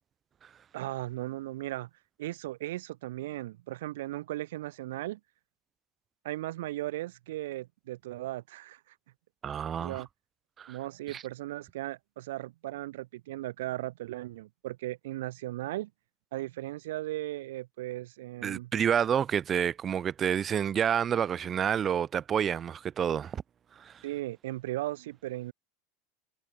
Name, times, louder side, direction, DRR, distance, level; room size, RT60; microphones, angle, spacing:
voice 1, 0.7-1.9 2.2-5.2 6.2-8.9 9.8-10.1 10.7-15.9 16.3-18.7 24.0-25.5, right 16 dB, 90° right, 1.0 m, -37 dB
voice 2, 9.4-10.0 10.6-10.8 11.1-11.2 18.4-23.4 23.8-24.0, right 8 dB, 25° right, 0.7 m, -29 dB
supercardioid pair, 155°, 0 cm